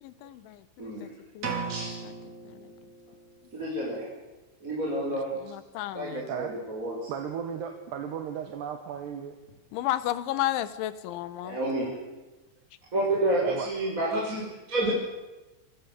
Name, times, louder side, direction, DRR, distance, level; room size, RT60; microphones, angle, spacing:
voice 1, 0.0-1.1 1.4-1.6 2.0-2.1 2.5-2.7 5.5-6.3 9.7-11.6, left 13 dB, 80° left, 15 dB, 3.6 m, -33 dB
voice 2, 0.8-1.1 1.7-1.9 3.5-4.1 4.6-5.3 5.9-7.1 11.4-12.0 12.9-14.9, right 1 dB, 15° right, -4 dB, 6.1 m, -29 dB
sound 1, 1.4-3.3, right 5 dB, 40° right, 4.9 m, -36 dB
voice 3, 7.1-9.4 13.4-13.7, right 8 dB, 65° right, 5 dB, 3.7 m, -35 dB
27.0 x 25.0 x 8.3 m, 1.1 s
omnidirectional pair, 5.4 m